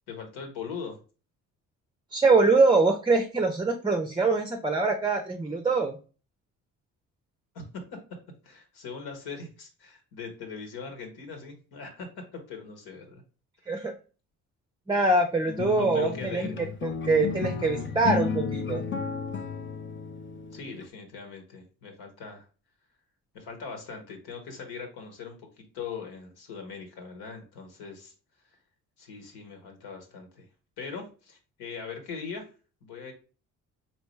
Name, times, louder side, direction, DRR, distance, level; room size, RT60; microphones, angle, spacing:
voice 1, 0.1-1.0 7.5-7.8 8.4-13.2 15.7-16.6 20.5-22.4 23.3-28.1 29.0-30.4 30.8-32.5 32.8-33.1, left 5 dB, 65° left, 4 dB, 1.5 m, -40 dB
voice 2, 2.1-6.0 13.7-13.9 14.9-16.5 16.8-18.8, right 3 dB, 10° right, 5 dB, 0.7 m, -24 dB
sound 1, 15.5-20.9, left 6 dB, 30° left, 0.7 m, -33 dB
4.3 x 3.0 x 3.1 m, 0.35 s
hypercardioid pair, 50°, 42 cm